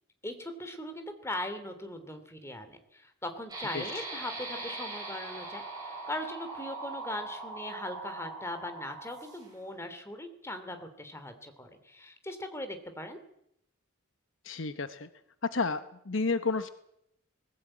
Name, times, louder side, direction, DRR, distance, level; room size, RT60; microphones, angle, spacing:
voice 1, 0.2-13.2, left 1 dB, 10° left, 8 dB, 2.8 m, -40 dB
sound 1, 3.5-9.6, right 3 dB, 20° right, 7.6 m, -41 dB
voice 2, 14.4-15.1 15.4-16.7, left 4 dB, 60° left, 11 dB, 1.0 m, -31 dB
20.5 x 16.0 x 8.8 m, 0.77 s
head